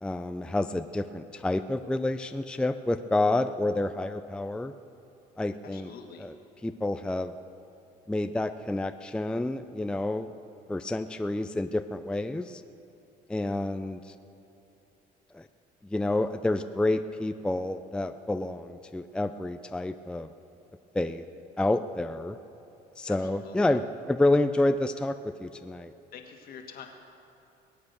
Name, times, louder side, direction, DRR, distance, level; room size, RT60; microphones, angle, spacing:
voice 1, 0.0-4.7 5.4-5.9 6.2-6.3 6.6-7.3 8.1-10.3 10.7-12.6 13.3-14.1 15.3-15.5 15.8-20.3 20.9-21.2 21.6-22.4 23.0-25.9, left 2 dB, 5° left, 9 dB, 0.4 m, -29 dB
voice 2, 5.7-6.3 23.1-23.2 23.4-23.6 26.1-26.9, left 7 dB, 65° left, 4 dB, 1.8 m, -45 dB
21.0 x 8.6 x 6.8 m, 2.9 s
cardioid pair, 110°, 17 cm